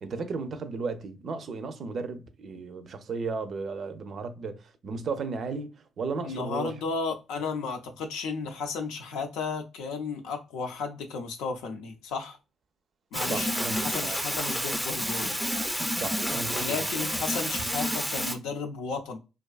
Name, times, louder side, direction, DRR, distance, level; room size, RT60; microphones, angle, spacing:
voice 1, 0.0-5.7 6.0-6.7 13.3-14.2 16.0-16.8, right 4 dB, 55° right, 0.4 m, -34 dB
voice 2, 6.2-12.4 13.1-15.4 16.5-19.2, left 4 dB, 85° left, 0.5 m, -34 dB
sound 1, 13.1-18.4, equal, ahead, 0.4 m, -29 dB
2.5 x 2.3 x 2.3 m
supercardioid pair, 70°, 0 cm